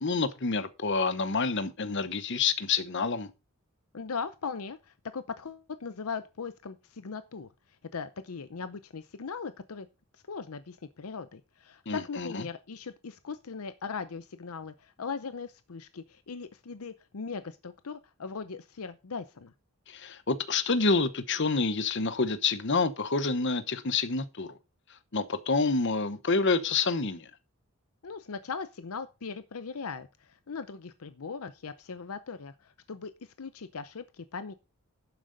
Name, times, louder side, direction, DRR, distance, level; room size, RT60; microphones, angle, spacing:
voice 1, 0.0-3.3 11.9-12.4 19.9-24.6 25.1-27.3, left 4 dB, 55° left, 1.0 m, -28 dB
voice 2, 3.9-7.5 7.9-9.9 10.3-19.5 28.0-34.5, left 5 dB, 80° left, 0.7 m, -39 dB
11.5 x 7.6 x 4.0 m
head